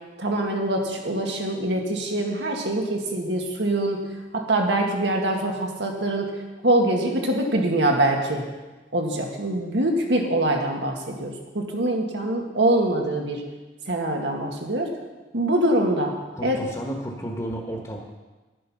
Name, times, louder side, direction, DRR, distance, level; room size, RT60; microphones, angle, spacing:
voice 1, 0.2-4.0 4.3-6.3 6.6-8.4 8.9-13.4 13.9-14.9 15.3-16.1 16.4-16.6, right 1 dB, 80° right, 1 dB, 2.1 m, -24 dB
voice 2, 16.3-18.0, right 1 dB, 20° left, 0 dB, 1.5 m, -32 dB
11.0 x 11.0 x 5.8 m, 1.2 s
head